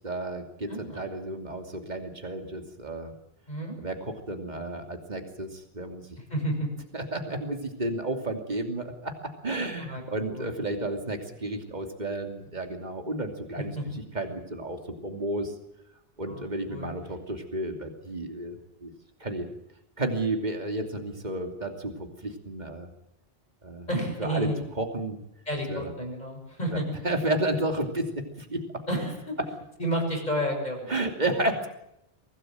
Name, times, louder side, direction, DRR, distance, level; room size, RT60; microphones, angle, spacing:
voice 1, 0.0-3.1 3.8-6.0 6.9-15.5 16.2-18.9 19.2-19.5 20.0-21.9 22.2-22.9 23.6-23.9 24.2-24.5 24.7-25.2 25.7-25.9 26.7-26.8 27.0-28.8 30.9-31.7, right 2 dB, 45° right, 5 dB, 3.0 m, -32 dB
voice 2, 0.7-1.0 3.5-3.7 6.3-6.7 9.8-10.5 13.6-13.8 16.3-17.0 23.9-24.6 25.5-26.9 28.9-29.4 29.8-30.9, equal, 45° left, 1 dB, 7.1 m, -31 dB
24.5 x 18.0 x 7.8 m, 0.81 s
omnidirectional pair, 1.1 m